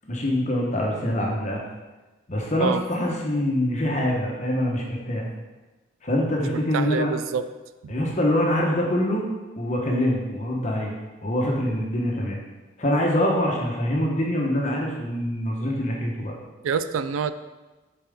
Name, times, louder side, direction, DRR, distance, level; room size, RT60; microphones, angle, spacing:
voice 1, 0.0-1.6 2.3-5.3 6.0-7.1 7.9-9.3 9.6-10.9 11.2-12.4 12.8-16.3, left 1 dB, 35° left, -1 dB, 0.9 m, -24 dB
voice 2, 6.7-7.5 7.8-8.0 16.6-17.3, right 6 dB, 85° right, 12 dB, 0.3 m, -26 dB
7.3 x 4.3 x 3.5 m, 1.2 s
head